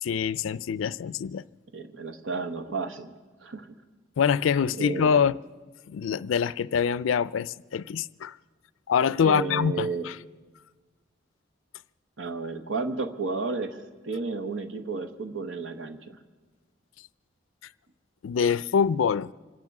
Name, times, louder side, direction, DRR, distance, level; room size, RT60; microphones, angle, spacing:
voice 1, 0.0-1.4 4.2-5.4 5.9-8.3 8.9-10.2 18.2-19.3, left 7 dB, 85° left, 0.4 m, -25 dB
voice 2, 1.7-3.1 3.4-3.7 4.8-5.2 9.2-10.1 12.2-16.2, right 4 dB, 90° right, 1.0 m, -32 dB
25.5 x 9.5 x 6.0 m
head